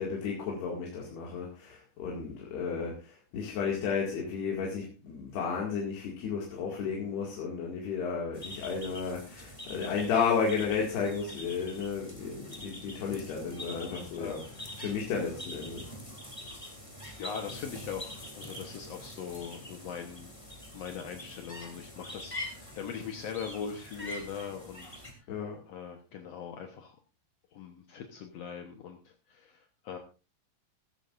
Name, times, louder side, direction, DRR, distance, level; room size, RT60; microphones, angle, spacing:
voice 1, 0.0-14.4 14.8-15.9 25.3-25.6, left 6 dB, 85° left, -2 dB, 4.3 m, -33 dB
sound 1, 8.3-25.1, left 1 dB, 10° left, 2.1 m, -45 dB
voice 2, 13.8-14.7 17.2-20.3 20.7-25.0 25.7-26.9 27.5-30.0, left 7 dB, 65° left, 4 dB, 1.6 m, -41 dB
15.0 x 15.0 x 2.6 m, 0.32 s
omnidirectional pair, 4.5 m